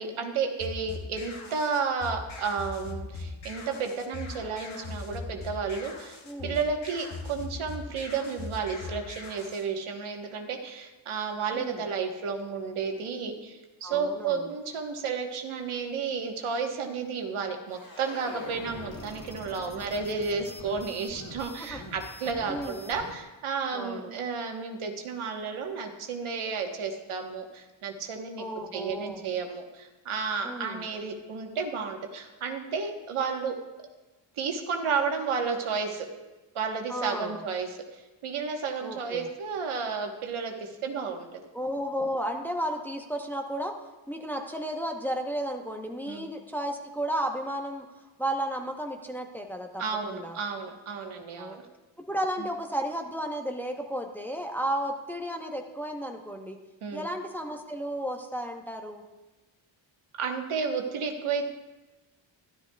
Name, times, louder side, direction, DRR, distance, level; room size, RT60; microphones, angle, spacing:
voice 1, 0.0-6.2 6.4-28.5 28.7-33.5 34.4-36.1 36.5-41.4 46.1-46.2 49.8-51.6 52.4-52.5 56.8-57.1 60.2-61.5, right 5 dB, 85° right, 3 dB, 1.3 m, -32 dB
sound 1, 0.6-9.6, left 3 dB, 75° left, 1.6 m, -40 dB
voice 2, 6.3-6.6 11.5-11.8 13.8-14.5 21.7-21.8 22.5-22.9 23.7-24.1 28.4-29.2 30.4-30.9 36.9-37.4 38.8-39.3 41.5-43.7 44.1-47.9 48.2-50.4 51.1-51.6 52.0-56.6 56.9-59.0, equal, 5° left, 2 dB, 0.8 m, -33 dB
sound 2, 17.7-23.2, left 1 dB, 40° left, 2.5 m, -44 dB
13.0 x 12.0 x 2.3 m, 1.1 s
wide cardioid pair, 110°, 49 cm